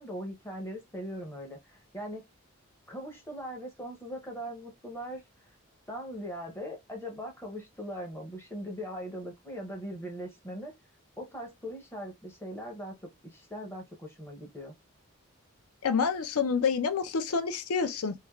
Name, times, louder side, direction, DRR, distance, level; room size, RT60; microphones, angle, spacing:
voice 1, 0.0-2.2 2.9-5.5 5.9-10.7 11.2-14.8, equal, 10° left, 0.5 m, -40 dB
voice 2, 15.8-18.1, left 5 dB, 85° left, 0.5 m, -28 dB
3.2 x 2.4 x 2.2 m
head